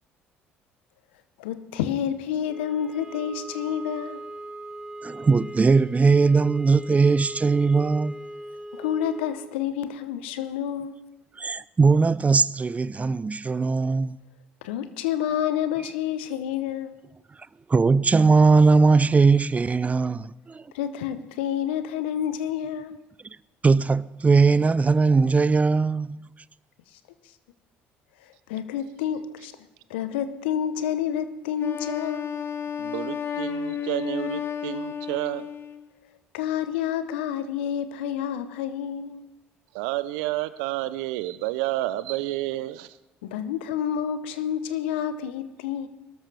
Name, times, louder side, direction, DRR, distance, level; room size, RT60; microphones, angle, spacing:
voice 1, 1.4-4.2 8.7-11.1 14.6-17.0 20.7-23.0 28.5-29.5 29.9-32.4 36.3-39.3 43.2-45.9, left 9 dB, 80° left, 0.9 m, -29 dB
sound 1, 2.5-9.4, right 1 dB, 5° right, 3.5 m, -39 dB
voice 2, 5.0-8.1 11.4-14.2 17.7-20.6 23.6-26.2, right 4 dB, 25° right, 0.5 m, -20 dB
Wind instrument woodwind instrument, 31.6-35.9, left 8 dB, 45° left, 1.1 m, -32 dB
voice 3, 32.8-35.5 39.7-43.0, right 16 dB, 75° right, 0.6 m, -30 dB
22.0 x 13.0 x 3.4 m
hypercardioid pair, 55°, 6 cm